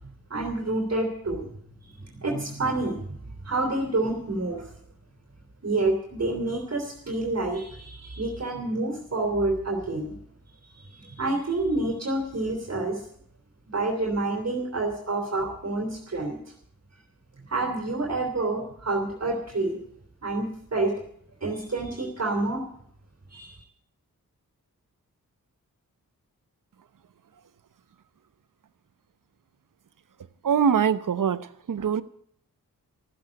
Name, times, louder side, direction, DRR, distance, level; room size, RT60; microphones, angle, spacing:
voice 1, 0.3-1.4 1.8-4.7 5.6-10.2 10.7-13.0 13.7-16.4 17.5-19.8 20.2-20.4 20.7-20.9 21.4-22.6 23.3-23.6, right 2 dB, 45° right, 3.3 m, -28 dB
voice 2, 30.4-32.0, right 7 dB, 65° right, 0.8 m, -23 dB
14.0 x 7.8 x 10.0 m
cardioid pair, 60°, 35 cm